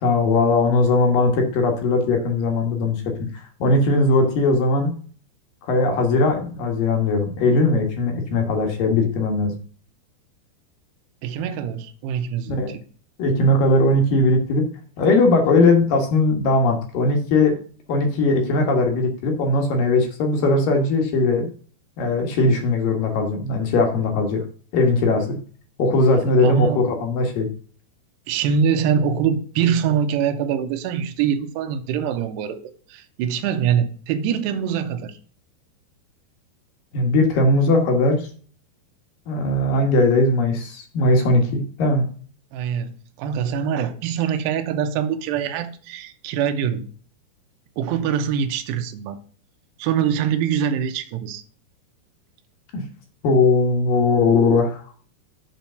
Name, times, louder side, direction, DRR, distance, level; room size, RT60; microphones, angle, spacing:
voice 1, 0.0-4.9 5.6-9.5 12.6-12.7 13.2-14.6 15.0-17.5 17.9-21.5 22.0-24.4 24.7-25.4 25.8-27.5 36.9-38.3 39.3-42.0 52.7-52.8 53.2-54.9, left 2 dB, 65° left, 2.7 m, -19 dB
voice 2, 11.2-12.8 26.4-26.8 28.3-35.2 42.5-46.9 47.8-49.2 49.8-51.4, right 8 dB, 85° right, 2.9 m, -24 dB
8.1 x 4.5 x 6.7 m
omnidirectional pair, 4.9 m